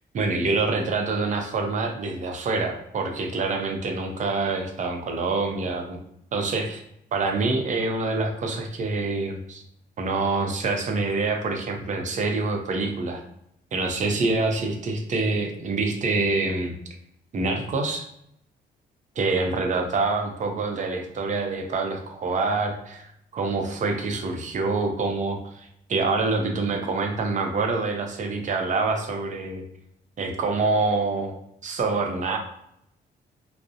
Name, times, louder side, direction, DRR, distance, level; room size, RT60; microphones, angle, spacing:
voice 1, 0.1-6.0 6.3-6.8 7.1-9.6 10.0-13.2 13.7-16.7 17.3-18.1 19.2-29.6 30.2-32.4, right 3 dB, 45° right, 3 dB, 0.5 m, -26 dB
2.4 x 2.0 x 2.6 m, 0.74 s
cardioid pair, 115°, 17 cm